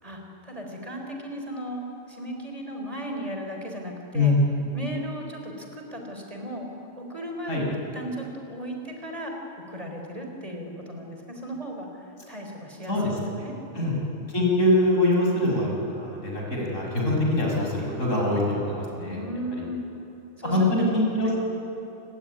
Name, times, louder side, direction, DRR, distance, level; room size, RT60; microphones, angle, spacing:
voice 1, 0.0-4.3 4.7-6.7 7.0-13.9 19.0-19.8 20.4-20.6 21.2-21.4, equal, 25° right, 2 dB, 4.5 m, -36 dB
voice 2, 14.3-19.2 20.4-21.4, left 1 dB, 80° left, -2 dB, 7.4 m, -23 dB
28.5 x 20.5 x 9.8 m, 2.9 s
omnidirectional pair, 1.3 m